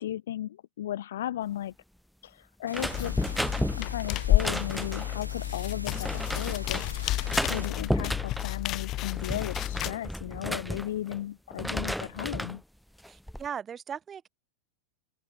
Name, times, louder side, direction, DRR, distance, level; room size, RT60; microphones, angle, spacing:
voice 1, 0.0-1.7 2.2-3.1 3.7-12.6, left 12 dB, 60° left, 0.9 m, -35 dB
sound 1, 2.7-5.2 5.9-6.9 7.3-8.5 9.0-11.2 11.5-12.6 13.0-13.5, equal, ahead, 0.4 m, -33 dB
sound 2, 2.7-7.7, equal, 90° right, 0.8 m, -44 dB
sound 3, 2.9-9.9, left 15 dB, 35° left, 1.2 m, -31 dB
voice 2, 13.1-14.3, right 7 dB, 20° right, 2.3 m, -38 dB
open air
figure-of-eight pair, 90°, 0 cm